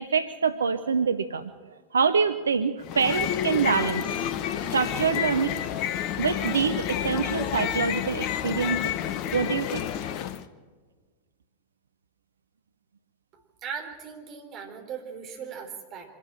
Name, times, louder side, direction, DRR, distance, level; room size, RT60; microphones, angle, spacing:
voice 1, 0.0-1.5 1.9-4.0 4.7-5.6 6.2-8.9 9.3-9.9, right 6 dB, 70° right, 11 dB, 0.6 m, -25 dB
sound 1, 2.8-10.4, left 10 dB, 40° left, 1.0 m, -29 dB
voice 2, 13.3-16.2, right 7 dB, 35° right, 3 dB, 3.8 m, -39 dB
25.0 x 12.0 x 8.8 m, 1.4 s
figure-of-eight pair, 90°, 0 cm